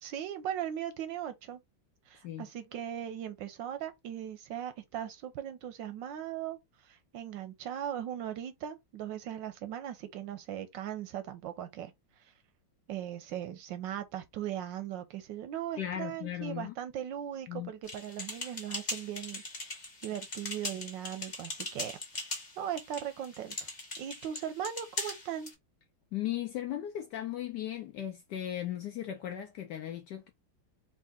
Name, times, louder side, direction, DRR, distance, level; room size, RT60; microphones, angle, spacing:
voice 1, 0.0-1.6 2.1-11.9 12.2-12.3 12.9-23.7 24.0-25.5, right 10 dB, 75° right, 1.1 m, -39 dB
voice 2, 15.8-16.7 17.5-17.7 26.1-30.3, left 11 dB, 75° left, 1.0 m, -37 dB
sound 1, 17.9-25.5, left 2 dB, 30° left, 0.9 m, -40 dB
3.7 x 2.7 x 3.5 m
omnidirectional pair, 2.3 m